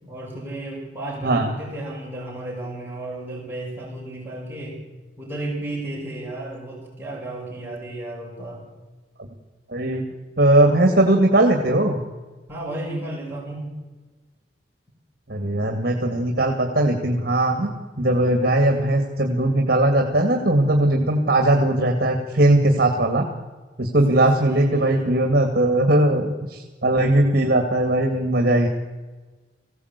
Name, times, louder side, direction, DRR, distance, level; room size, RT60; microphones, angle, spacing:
voice 1, 0.0-4.8 5.2-8.7 12.5-13.7 24.1-25.1, right 1 dB, 10° right, -3 dB, 5.3 m, -33 dB
voice 2, 9.7-10.0 10.4-12.0 15.3-23.3 23.8-28.7, right 1 dB, 55° right, 3 dB, 2.1 m, -19 dB
20.5 x 16.0 x 8.2 m, 1.3 s
head